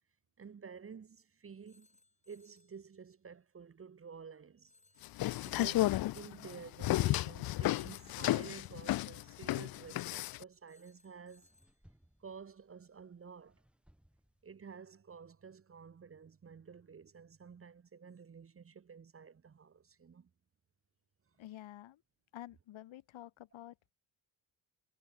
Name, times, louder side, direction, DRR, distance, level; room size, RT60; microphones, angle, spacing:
voice 1, 0.4-1.9 2.3-4.7 5.4-11.5 12.2-13.6 14.4-20.3, right 6 dB, 30° right, 1.4 m, -52 dB
Telephone, 1.7-2.8 4.7-5.8 7.7-8.8 10.7-11.8, left 2 dB, 15° left, 6.9 m, -69 dB
sound 1, 5.0-10.4, left 16 dB, 55° left, 0.5 m, -33 dB
sound 2, 9.3-14.6, equal, ahead, 5.2 m, -69 dB
voice 2, 21.4-22.0 22.3-23.9, left 14 dB, 80° left, 3.9 m, -50 dB
cardioid pair, 135°, 46 cm